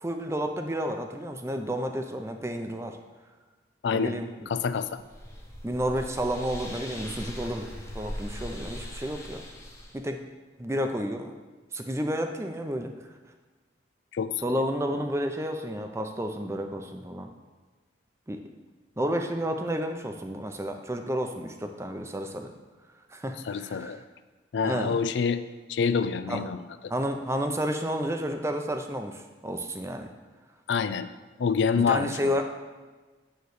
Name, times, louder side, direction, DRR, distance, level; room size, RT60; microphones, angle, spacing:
voice 1, 0.0-3.0 3.9-4.5 5.6-7.7 7.9-9.4 9.9-10.2 10.6-11.3 11.7-12.9 14.4-17.3 18.3-18.4 19.0-22.5 23.1-24.0 24.6-25.0 26.3-26.4 26.9-30.1 31.9-32.4, equal, 15° right, 5 dB, 0.6 m, -31 dB
voice 2, 3.8-4.2 4.5-5.0 14.1-14.3 14.9-15.0 23.5-24.0 24.5-25.4 25.7-26.6 30.7-31.1 31.4-32.2, left 6 dB, 75° left, 12 dB, 0.4 m, -26 dB
sound 1, 4.7-10.0, left 1 dB, 15° left, 0.9 m, -40 dB
9.3 x 3.2 x 6.4 m, 1.3 s
head